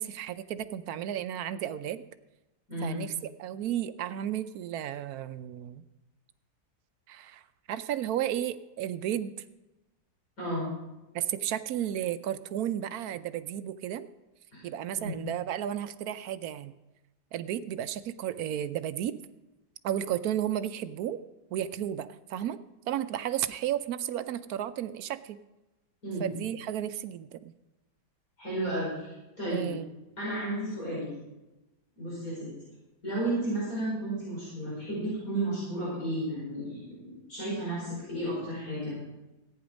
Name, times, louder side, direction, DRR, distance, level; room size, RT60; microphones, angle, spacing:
voice 1, 0.0-2.0 2.8-3.1 3.4-5.8 7.1-7.4 7.7-9.3 11.1-14.1 14.6-16.7 17.3-19.2 19.8-21.2 21.5-22.6 22.9-25.4 26.2-27.5 29.5-29.9, right 11 dB, 70° right, 12 dB, 1.0 m, -33 dB
voice 2, 2.7-3.0 10.4-10.7 14.5-14.6 15.0-15.2 26.0-26.2 28.4-29.7 30.2-31.1 32.0-32.5 33.0-38.9, right 1 dB, 55° left, -7 dB, 5.5 m, -33 dB
14.5 x 9.7 x 5.2 m, 1.0 s
omnidirectional pair, 1.8 m